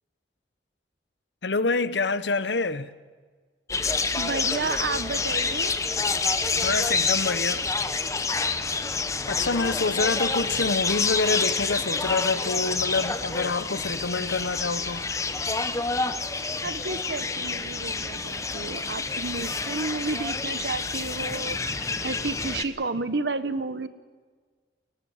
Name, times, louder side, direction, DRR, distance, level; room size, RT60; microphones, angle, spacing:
voice 1, 1.4-2.9 6.5-7.6 9.3-15.1, left 3 dB, 75° left, 1.0 m, -27 dB
sound 1, 3.7-22.6, left 4 dB, 15° left, 0.9 m, -28 dB
voice 2, 4.1-5.7 16.6-23.9, right 3 dB, 70° right, 1.2 m, -31 dB
22.0 x 19.0 x 7.3 m
head